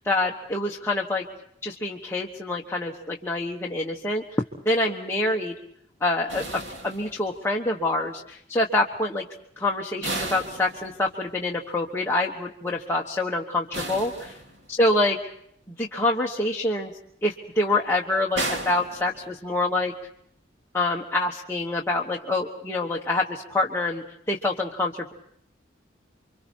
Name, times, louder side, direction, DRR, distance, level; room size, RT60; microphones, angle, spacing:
voice 1, 0.0-1.2 1.6-4.2 4.7-5.5 6.0-9.2 9.6-14.4 14.8-15.2 15.7-16.9 17.2-19.9 20.7-25.1, left 2 dB, 15° left, -2 dB, 1.2 m, -26 dB
sound 1, 6.3-7.6 10.0-11.4 13.7-14.9 18.3-19.7, right 2 dB, 75° right, 2.7 m, -34 dB
29.5 x 24.5 x 4.5 m, 0.72 s
head